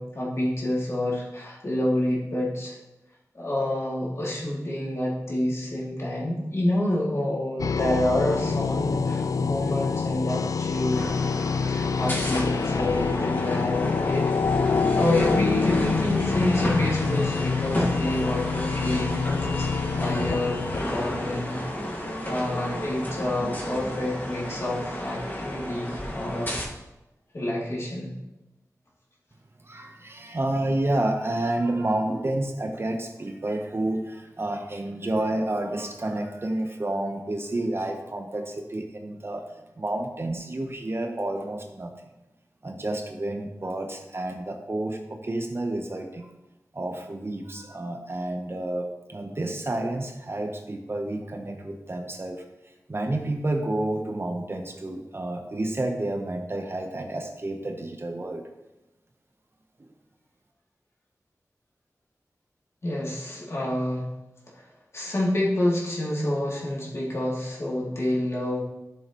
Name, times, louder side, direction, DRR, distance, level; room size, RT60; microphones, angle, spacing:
voice 1, 0.0-2.8 3.3-11.1 11.7-14.3 14.9-19.2 19.5-21.6 22.0-26.6 27.3-28.1 62.8-64.1 64.5-64.7 64.9-68.6, left 1 dB, 50° left, -5 dB, 2.8 m, -28 dB
sound 1, 7.6-21.7, left 5 dB, 65° left, 0.3 m, -27 dB
sound 2, 10.9-26.6, left 1 dB, 30° left, 1.7 m, -32 dB
voice 2, 29.6-39.5 39.8-41.9 42.6-46.3 46.7-52.4 52.9-58.4 59.8-59.9, right 1 dB, 40° right, 4 dB, 0.9 m, -30 dB
12.5 x 6.8 x 3.1 m, 0.99 s
wide cardioid pair, 90°, 6 cm